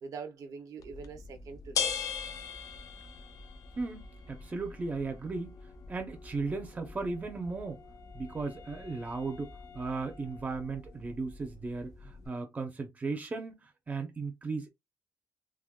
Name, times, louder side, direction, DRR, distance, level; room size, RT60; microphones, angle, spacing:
voice 1, 0.0-2.1, right 5 dB, 65° right, 0.7 m, -44 dB
sound 1, 0.8-12.3, left 6 dB, 65° left, 0.6 m, -42 dB
voice 2, 3.8-5.6 5.9-7.8 8.1-14.7, right 3 dB, 25° right, 0.6 m, -36 dB
Wind instrument woodwind instrument, 6.5-11.2, left 7 dB, 45° left, 0.9 m, -56 dB
3.5 x 2.2 x 2.3 m
wide cardioid pair, 145°, 6 cm